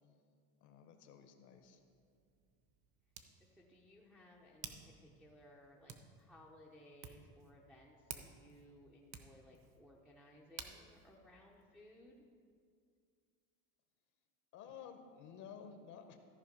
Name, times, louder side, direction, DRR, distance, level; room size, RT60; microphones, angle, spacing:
voice 1, 0.6-1.8 14.5-16.2, left 7 dB, 45° left, 7 dB, 0.7 m, -53 dB
Hands, 1.5-12.3, right 7 dB, 40° right, 0.7 m, -56 dB
voice 2, 3.5-12.2, left 1 dB, ahead, -4 dB, 0.4 m, -61 dB
13.5 x 5.1 x 5.1 m, 2.2 s
cardioid pair, 150°, 43 cm